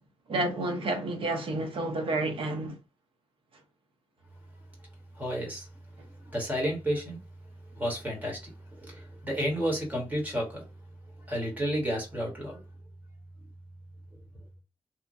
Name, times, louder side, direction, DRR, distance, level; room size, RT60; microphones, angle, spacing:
voice 1, 0.3-2.8, right 2 dB, 60° right, 0.7 m, -30 dB
voice 2, 5.2-5.7 6.2-7.2 7.7-10.6 11.2-12.6, equal, 15° right, 1.2 m, -31 dB
2.9 x 2.2 x 2.6 m
wide cardioid pair, 165°, 10 cm